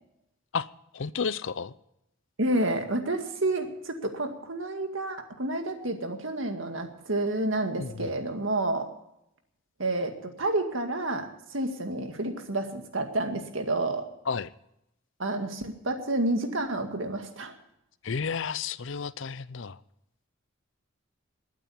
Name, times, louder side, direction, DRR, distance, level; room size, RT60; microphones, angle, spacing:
voice 1, 0.9-1.7 7.8-8.1 14.3-14.5 18.0-19.8, left 5 dB, 60° left, 18 dB, 0.6 m, -32 dB
voice 2, 2.4-8.9 9.8-14.1 15.2-17.5, right 2 dB, 65° right, 6 dB, 2.1 m, -29 dB
20.5 x 9.1 x 7.1 m, 0.83 s
head